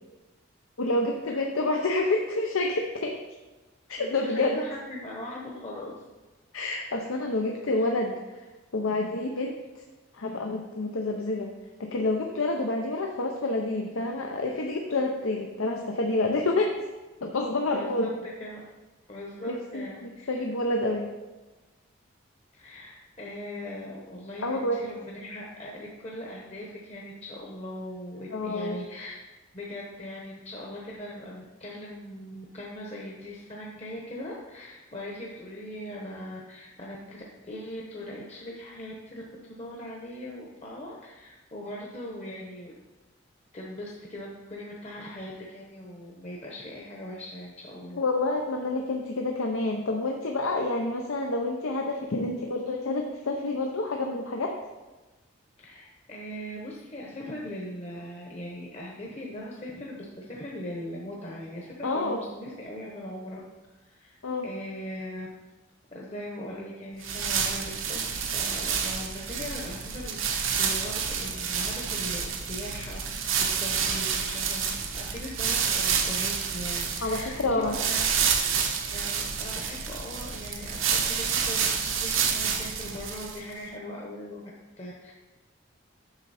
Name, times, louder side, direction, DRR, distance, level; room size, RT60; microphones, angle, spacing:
voice 1, 0.8-3.2 3.9-4.6 6.5-8.5 8.7-9.8 10.1-11.5 11.8-16.9 17.2-18.1 19.4-21.1 24.4-24.8 28.3-28.8 48.0-54.6 61.8-62.2 64.2-64.5 77.0-77.7, left 2 dB, 85° left, 2 dB, 0.7 m, -28 dB
voice 2, 4.0-5.9 17.7-18.1 18.4-18.6 19.1-20.4 22.5-29.2 29.5-39.2 39.5-42.7 43.5-48.0 55.6-63.4 63.8-64.2 64.4-65.3 65.9-73.2 73.6-78.0 78.8-84.4 84.8-85.1, left 1 dB, 30° left, -3 dB, 0.9 m, -40 dB
sound 1, 67.0-83.5, right 6 dB, 75° right, 0.9 m, -29 dB
8.1 x 6.6 x 4.2 m, 1.2 s
head